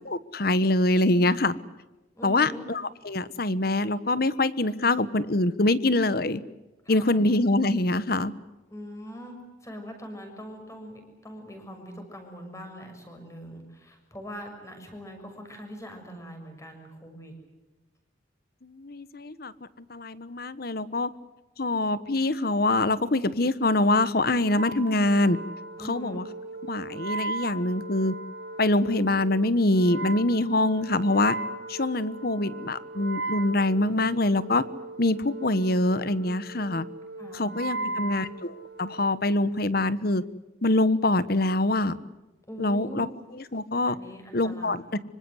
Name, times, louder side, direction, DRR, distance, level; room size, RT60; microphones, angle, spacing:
voice 1, 0.1-1.5 2.2-6.4 6.9-8.3 18.6-19.5 19.9-21.1 21.6-25.4 25.9-26.3 26.7-28.1 28.6-31.3 31.7-34.6 35.0-36.9 37.3-38.5 38.8-40.2 40.6-42.0 42.6-43.1 43.3-43.9 44.3-45.0, left 2 dB, 50° left, 15 dB, 1.2 m, -24 dB
voice 2, 2.2-2.7 6.8-7.2 8.7-17.3 25.8-26.2 37.2-38.3 42.5-43.1 43.9-45.0, equal, 15° left, 5 dB, 6.6 m, -42 dB
Wind instrument woodwind instrument, 24.4-39.1, right 2 dB, 65° right, 4.7 m, -37 dB
25.5 x 25.0 x 7.9 m, 1.1 s
head